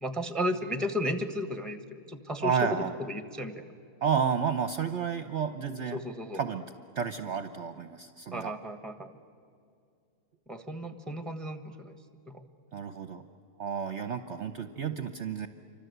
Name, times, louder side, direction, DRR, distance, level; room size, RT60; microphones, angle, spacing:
voice 1, 0.0-2.7 3.1-3.7 5.9-6.4 8.3-9.1 10.5-12.0 12.3-12.4, equal, ahead, 8 dB, 1.2 m, -34 dB
voice 2, 2.4-2.9 4.0-6.0 6.3-6.6 7.0-8.5 12.7-13.2 13.6-15.5, right 7 dB, 55° right, 9 dB, 1.0 m, -31 dB
28.0 x 25.0 x 8.0 m, 2.4 s
omnidirectional pair, 1.7 m